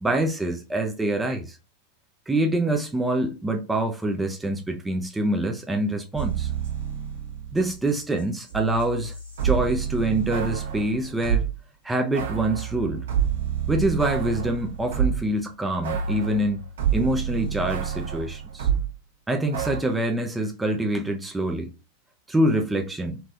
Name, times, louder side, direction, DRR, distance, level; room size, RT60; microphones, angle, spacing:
voice 1, 0.0-1.6 2.3-6.5 7.5-9.1 9.4-11.5 11.8-13.0 13.7-16.6 16.9-18.7 19.3-21.7 22.3-23.2, right 1 dB, 10° right, 0.5 m, -25 dB
sound 1, 6.1-7.9 8.2-11.5 12.1-15.3 15.8-18.9 19.5-19.8, right 8 dB, 65° right, 1.2 m, -28 dB
2.9 x 2.9 x 2.3 m
figure-of-eight pair, 90°, 0 cm